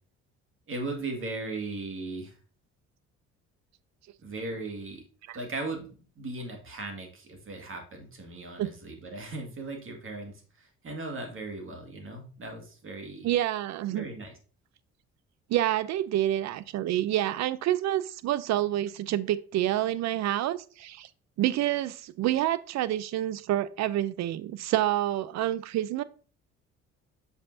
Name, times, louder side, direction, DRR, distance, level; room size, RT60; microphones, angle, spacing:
voice 1, 0.7-2.4 4.2-5.0 5.3-13.3 13.9-14.3, right 2 dB, 45° right, 2.0 m, -38 dB
voice 2, 13.2-14.0 15.5-21.1 21.4-26.0, right 13 dB, 65° right, 0.5 m, -28 dB
6.8 x 5.6 x 2.7 m
supercardioid pair, 80°, 30 cm